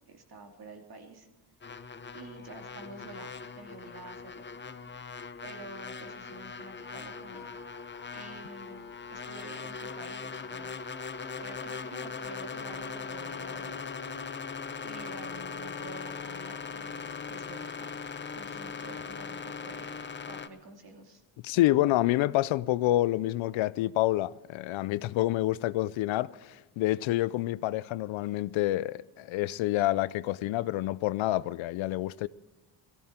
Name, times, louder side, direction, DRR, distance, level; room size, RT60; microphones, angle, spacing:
voice 1, 0.1-1.3 2.1-4.5 5.4-7.5 8.1-10.9 11.4-13.9 14.8-18.0 18.3-20.0 20.3-21.2, right 2 dB, 50° right, 3.0 m, -48 dB
sound 1, 1.6-20.5, left 5 dB, 25° left, 0.9 m, -40 dB
Wind instrument woodwind instrument, 6.8-16.8, left 4 dB, 45° left, 2.7 m, -54 dB
voice 2, 21.4-32.3, left 16 dB, 80° left, 0.6 m, -28 dB
17.5 x 14.0 x 4.4 m
cardioid pair, 75°, 46 cm